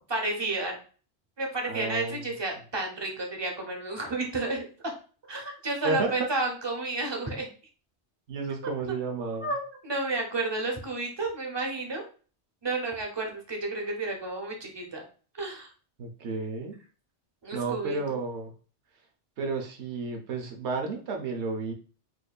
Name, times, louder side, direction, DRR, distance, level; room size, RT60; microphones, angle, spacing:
voice 1, 0.1-0.8 1.4-4.9 5.3-7.5 8.9-9.0 9.4-12.0 12.6-15.0 15.4-15.7 17.4-18.2, right 2 dB, 25° right, 2 dB, 0.7 m, -31 dB
voice 2, 1.7-2.2 5.8-6.3 8.3-9.5 16.0-16.8 17.5-18.5 19.4-21.7, right 4 dB, 80° right, 2 dB, 1.0 m, -32 dB
4.4 x 2.6 x 2.3 m, 0.38 s
omnidirectional pair, 1.1 m